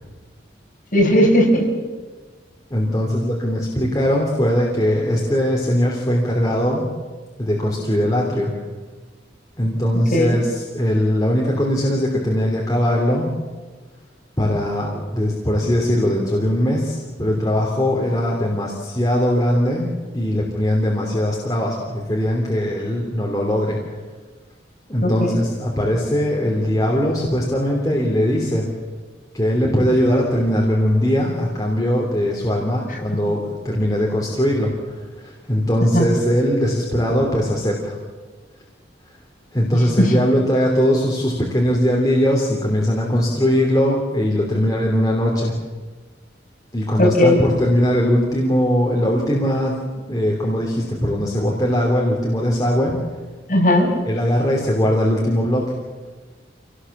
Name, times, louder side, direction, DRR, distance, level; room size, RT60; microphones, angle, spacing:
voice 1, 0.9-1.6 10.1-10.4 25.0-25.3 35.9-36.1 40.0-40.1 47.0-47.4 53.5-53.9, left 1 dB, 45° left, -1 dB, 6.0 m, -16 dB
voice 2, 2.7-6.9 7.4-8.5 9.6-13.3 14.4-19.9 20.1-23.8 24.9-28.7 29.3-38.0 39.5-45.6 46.7-49.8 50.1-53.0 54.0-55.7, equal, 20° left, -3 dB, 2.9 m, -20 dB
26.5 x 18.0 x 7.3 m, 1.4 s
head